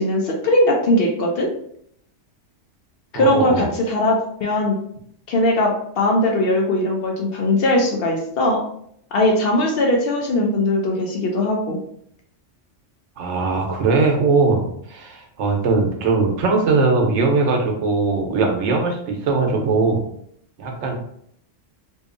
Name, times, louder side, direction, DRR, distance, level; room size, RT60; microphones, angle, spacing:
voice 1, 0.0-1.5 3.1-4.8 5.3-8.6 9.1-11.8, left 1 dB, 60° left, 0 dB, 0.7 m, -19 dB
voice 2, 3.1-3.7 13.2-20.0 20.6-21.0, right 3 dB, 75° right, 2 dB, 0.9 m, -20 dB
2.7 x 2.3 x 2.4 m, 0.68 s
omnidirectional pair, 1.2 m